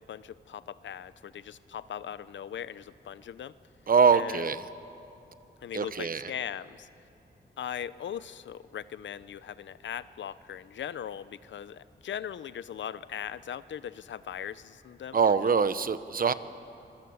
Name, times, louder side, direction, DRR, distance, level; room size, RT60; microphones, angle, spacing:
voice 1, 0.0-3.5 4.1-4.5 5.6-6.9 7.6-15.5, left 9 dB, 90° left, 16 dB, 0.6 m, -39 dB
voice 2, 3.9-4.6 5.7-6.2 15.1-16.3, right 6 dB, 50° right, 13 dB, 0.9 m, -23 dB
25.0 x 22.0 x 8.0 m, 2.9 s
wide cardioid pair, 100°, 19 cm